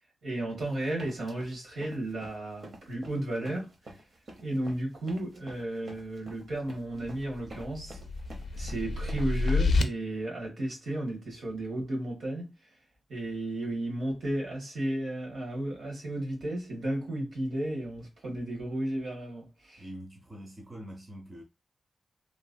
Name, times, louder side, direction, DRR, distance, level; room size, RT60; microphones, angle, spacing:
voice 1, 0.2-4.0 4.4-8.0 8.5-12.7 13.1-19.8, right 1 dB, 75° right, 1.5 m, -34 dB
sound 1, 0.6-9.5, right 1 dB, 55° right, 0.8 m, -49 dB
sound 2, 7.0-9.8, left 3 dB, 80° left, 0.4 m, -29 dB
voice 2, 19.8-21.4, equal, 20° right, 0.7 m, -44 dB
3.0 x 2.6 x 2.2 m
wide cardioid pair, 130°, 0 cm